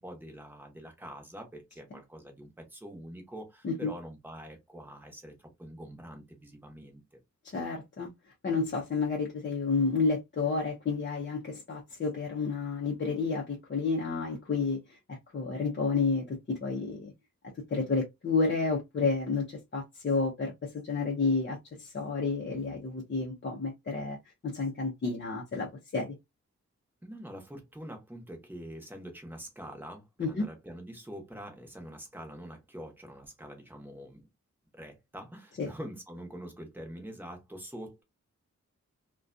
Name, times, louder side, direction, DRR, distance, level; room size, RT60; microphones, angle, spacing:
voice 1, 0.0-7.2 27.0-34.2 34.7-38.0, equal, 5° right, 0.9 m, -45 dB
voice 2, 7.4-8.1 8.4-17.1 17.7-24.2 24.4-26.2 30.2-30.5 35.6-35.7, left 4 dB, 40° left, 0.6 m, -30 dB
2.4 x 2.2 x 2.5 m
wide cardioid pair, 100°, 29 cm